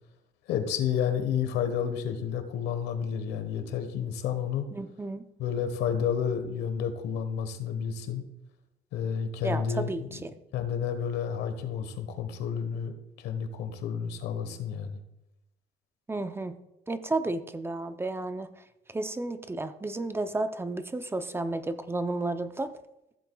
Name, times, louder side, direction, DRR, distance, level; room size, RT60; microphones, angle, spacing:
voice 1, 0.5-4.7 5.4-8.2 8.9-10.1 10.5-15.0, left 8 dB, 85° left, 8 dB, 1.3 m, -30 dB
voice 2, 4.7-5.2 9.4-10.3 16.1-16.6 16.9-18.6 18.9-22.7, right 2 dB, 15° right, 10 dB, 0.6 m, -32 dB
14.5 x 7.8 x 2.4 m, 0.89 s
cardioid pair, 110°, 17 cm